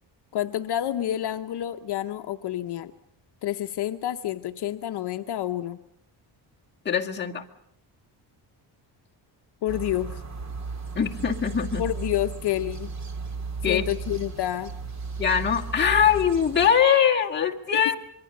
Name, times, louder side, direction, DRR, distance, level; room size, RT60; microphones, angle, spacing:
voice 1, 0.3-2.9 3.4-5.8 9.6-10.2 11.8-12.9 13.7-14.7, left 12 dB, 60° left, 6 dB, 0.9 m, -29 dB
voice 2, 6.8-7.4 11.0-11.9 13.6-13.8 15.2-18.0, left 8 dB, 25° left, -1 dB, 1.9 m, -22 dB
sound 1, 9.7-16.7, right 4 dB, 40° right, 2.2 m, -35 dB
26.0 x 23.0 x 6.7 m, 0.78 s
cardioid pair, 170°, 45 cm